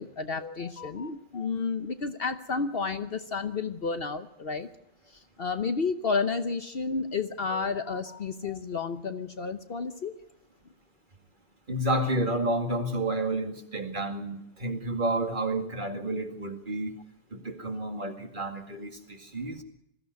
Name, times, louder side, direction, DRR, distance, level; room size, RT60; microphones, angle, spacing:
voice 1, 0.0-4.7 5.1-10.1, left 4 dB, 50° left, 9 dB, 1.1 m, -31 dB
voice 2, 11.7-16.9 17.3-19.6, right 1 dB, 40° right, 5 dB, 2.3 m, -30 dB
21.5 x 14.5 x 9.4 m, 0.83 s
omnidirectional pair, 1.4 m